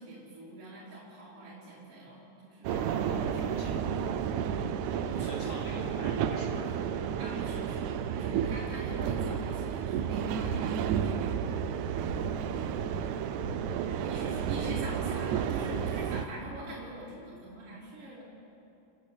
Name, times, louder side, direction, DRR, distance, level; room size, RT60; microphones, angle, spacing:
voice 1, 0.0-3.8 4.9-5.7 7.2-7.8 8.2-11.6 13.9-18.2, right 1 dB, 45° right, -9 dB, 5.1 m, -44 dB
sound 1, 2.6-16.3, right 8 dB, 75° right, 2.0 m, -31 dB
voice 2, 2.7-4.1 5.2-7.0 13.9-14.3, left 1 dB, 45° left, -1 dB, 3.8 m, -47 dB
29.5 x 10.5 x 8.9 m, 2.8 s
omnidirectional pair, 3.9 m